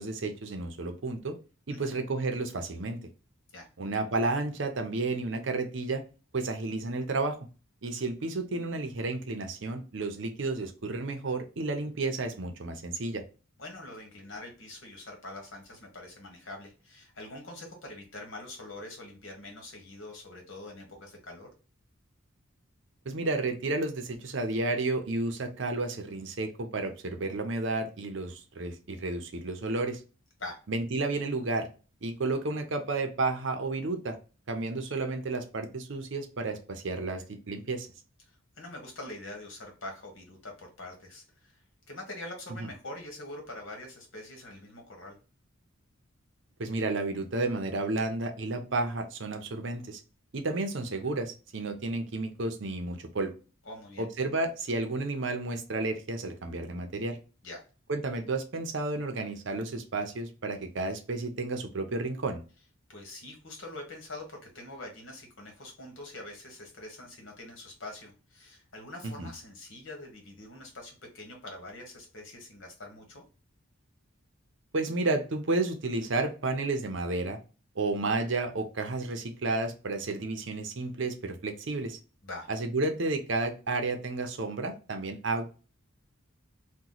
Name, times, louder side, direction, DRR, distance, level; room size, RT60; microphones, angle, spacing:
voice 1, 0.0-1.3 1.7-3.0 3.8-6.0 6.3-7.4 7.8-13.2 23.1-30.0 30.7-31.7 32.0-34.2 34.5-37.9 42.6-42.7 46.6-50.0 50.3-53.3 54.0-57.2 57.9-62.4 69.0-69.3 74.7-77.4 77.8-82.0 82.5-85.5, right 2 dB, 60° right, 6 dB, 0.6 m, -31 dB
voice 2, 13.6-21.5 30.4-30.6 38.3-41.6 41.9-45.2 53.6-54.1 57.4-57.6 62.9-73.2 82.2-82.5, left 2 dB, 65° left, 1 dB, 1.3 m, -44 dB
2.9 x 2.2 x 3.8 m, 0.34 s
head